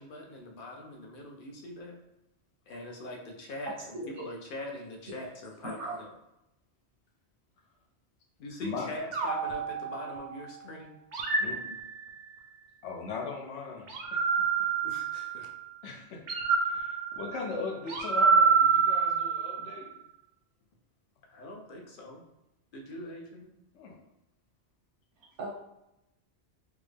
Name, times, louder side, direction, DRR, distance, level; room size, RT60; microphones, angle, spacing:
voice 1, 0.0-2.0 2.7-3.7 4.1-6.1 8.4-11.0 11.4-11.8 14.8-15.5 21.3-22.2 22.7-23.5, left 1 dB, 55° left, 1 dB, 0.7 m, -42 dB
voice 2, 3.8-4.2 5.6-6.0 25.2-25.5, right 2 dB, 80° right, -2 dB, 1.2 m, -38 dB
sound 1, 9.1-10.5 11.1-12.4 13.9-15.6 16.3-19.8, right 5 dB, 60° right, 0.5 m, -27 dB
voice 3, 12.8-14.2 15.8-16.2 16.6-19.9 23.7-24.0, left 4 dB, 80° left, 1 dB, 1.0 m, -39 dB
3.5 x 2.0 x 3.2 m, 0.87 s
omnidirectional pair, 1.2 m